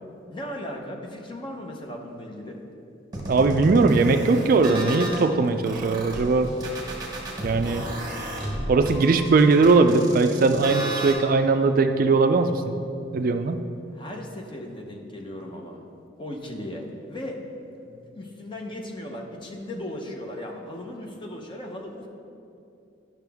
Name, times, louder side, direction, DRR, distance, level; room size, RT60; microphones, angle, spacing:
voice 1, 0.3-2.6 13.9-15.8 16.2-17.4 17.8-22.1, left 1 dB, 25° left, 1 dB, 0.8 m, -37 dB
sound 1, 3.1-5.2 5.6-11.1, right 1 dB, 20° right, 1.2 m, -33 dB
voice 2, 3.3-6.5 7.4-7.9 8.7-12.7 13.1-13.6, right 3 dB, 45° right, 8 dB, 0.3 m, -20 dB
10.5 x 6.0 x 3.5 m, 2.6 s
head